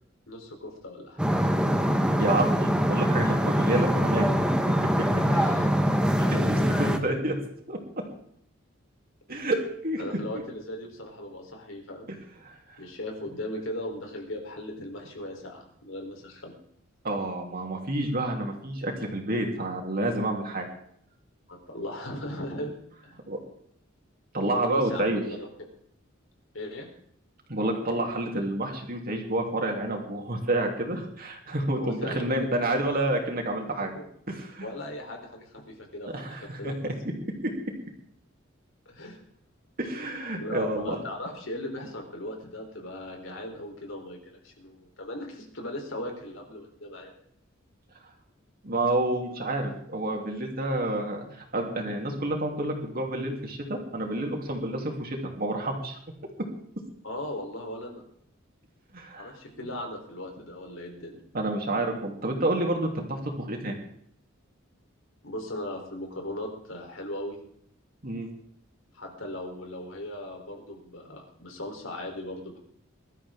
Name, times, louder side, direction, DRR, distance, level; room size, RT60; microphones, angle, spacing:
voice 1, 0.3-1.2 5.3-7.0 10.0-12.1 12.8-16.5 21.5-22.7 23.0-23.2 24.6-25.7 26.5-26.9 31.8-32.3 33.8-34.1 34.6-36.9 38.9-39.2 40.4-47.1 57.0-58.0 59.2-61.2 65.2-67.4 68.9-72.6, left 1 dB, 75° left, 2 dB, 3.9 m, -38 dB
sound 1, 1.2-7.0, equal, 5° right, 1.2 m, -23 dB
voice 2, 2.2-4.3 6.3-7.3 7.7-7.8 9.3-10.0 12.4-12.8 17.0-20.7 23.3-23.4 24.3-25.2 27.5-34.0 34.3-34.7 36.1-36.9 37.4-37.5 39.8-41.0 48.6-56.0 58.9-59.3 61.3-63.8 68.0-68.3, right 1 dB, 50° right, 1 dB, 3.2 m, -29 dB
21.5 x 13.0 x 3.8 m, 0.68 s
head